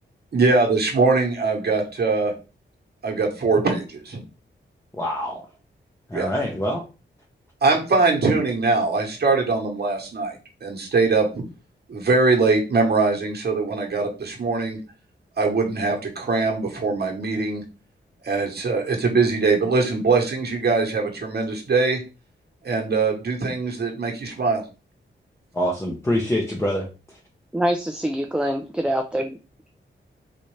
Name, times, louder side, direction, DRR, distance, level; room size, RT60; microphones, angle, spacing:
voice 1, 0.3-2.3 3.0-4.2 6.1-6.3 7.6-10.4 10.6-11.4 11.9-14.8 15.4-17.6 18.2-22.0 22.6-24.6, right 3 dB, 55° right, 2 dB, 1.1 m, -22 dB
voice 2, 4.9-5.5 6.1-6.8 25.5-27.2, equal, 15° left, -1 dB, 0.7 m, -25 dB
voice 3, 27.5-29.3, right 1 dB, 5° right, 4 dB, 0.3 m, -24 dB
4.1 x 2.5 x 3.1 m, 0.32 s
wide cardioid pair, 95°, 19 cm